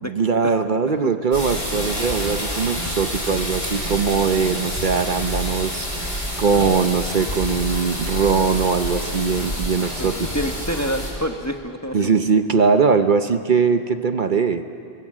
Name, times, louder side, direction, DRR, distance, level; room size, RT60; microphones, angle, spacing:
voice 1, 0.0-10.1 11.9-14.6, right 5 dB, 55° right, 9 dB, 1.0 m, -21 dB
sound 1, 1.3-11.1, equal, 85° left, 6.3 m, -28 dB
voice 2, 9.8-12.0, equal, 15° left, 5 dB, 1.1 m, -27 dB
26.0 x 22.0 x 7.4 m, 2.5 s
omnidirectional pair, 1.0 m